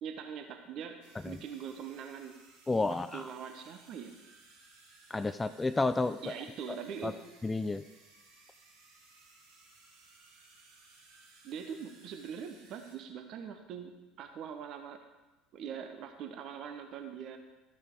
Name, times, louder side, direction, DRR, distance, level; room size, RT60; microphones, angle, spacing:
voice 1, 0.0-2.4 3.1-4.1 6.2-7.2 11.4-13.9 14.2-15.0 15.5-17.4, right 7 dB, 50° right, 6 dB, 0.9 m, -42 dB
sound 1, 1.0-13.0, right 3 dB, 75° right, 2.3 m, -60 dB
voice 2, 2.7-3.2 5.1-6.3 6.7-7.2 7.4-7.8, left 3 dB, 15° left, 12 dB, 0.4 m, -31 dB
13.0 x 7.9 x 3.8 m, 1.1 s
figure-of-eight pair, 65°, 0 cm